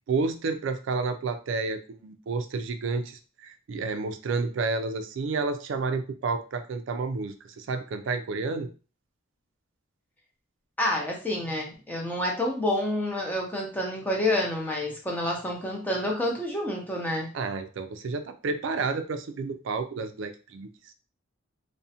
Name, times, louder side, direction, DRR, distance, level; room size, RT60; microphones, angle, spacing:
voice 1, 0.1-8.7 17.3-20.9, right 4 dB, 60° right, 8 dB, 0.3 m, -30 dB
voice 2, 10.8-17.3, left 1 dB, 10° left, -1 dB, 0.5 m, -28 dB
2.5 x 2.1 x 2.7 m, 0.35 s
head